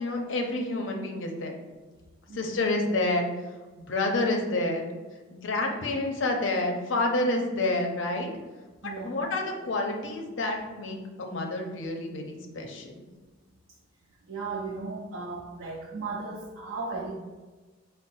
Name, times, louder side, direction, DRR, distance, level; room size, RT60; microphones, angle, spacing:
voice 1, 0.0-1.5 2.3-3.3 3.7-4.9 5.3-8.3 9.0-12.9, left 2 dB, 70° left, 2 dB, 0.6 m, -29 dB
voice 2, 8.8-9.2 14.2-17.1, right 3 dB, 80° right, -2 dB, 0.5 m, -36 dB
4.6 x 2.0 x 4.0 m, 1.3 s
head